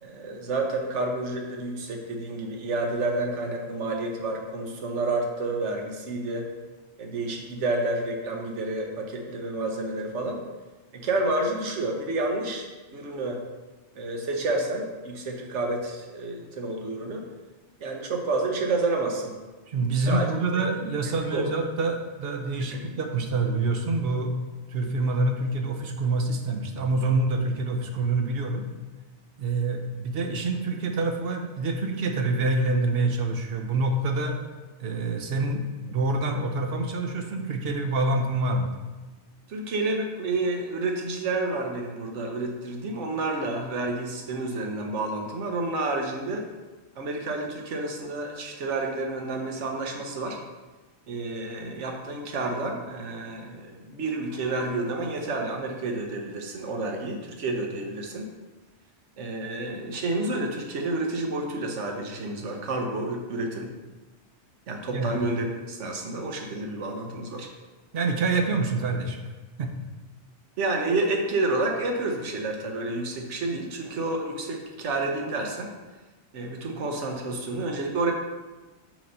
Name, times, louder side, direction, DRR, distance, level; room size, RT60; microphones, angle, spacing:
voice 1, 0.0-6.5 7.0-10.4 10.9-13.4 13.9-17.3 17.8-19.3 20.1-20.3 21.3-21.5 22.7-23.0 39.5-46.4 47.0-50.4 51.1-58.2 59.2-63.7 64.7-67.5 70.6-75.7 76.3-78.1, right 2 dB, 85° right, 2 dB, 1.2 m, -29 dB
voice 2, 19.7-24.3 24.7-28.6 29.4-34.4 34.8-38.7 64.9-65.2 67.9-69.2 69.6-69.7, right 3 dB, 60° right, 4 dB, 0.9 m, -26 dB
6.0 x 3.1 x 5.4 m, 1.2 s
omnidirectional pair, 1.2 m